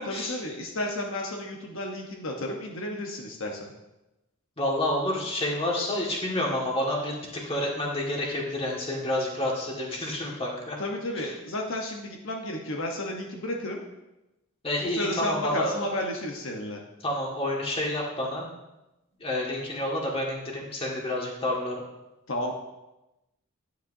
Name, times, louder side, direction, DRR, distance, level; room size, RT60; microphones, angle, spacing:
voice 1, 0.1-3.7 10.8-13.8 14.8-16.8 22.3-22.6, left 1 dB, 65° left, 1 dB, 1.0 m, -32 dB
voice 2, 4.6-10.8 11.2-11.3 14.6-15.9 17.0-18.5 19.2-21.8, left 1 dB, 25° left, -2 dB, 1.8 m, -29 dB
9.9 x 9.3 x 2.7 m, 0.97 s
head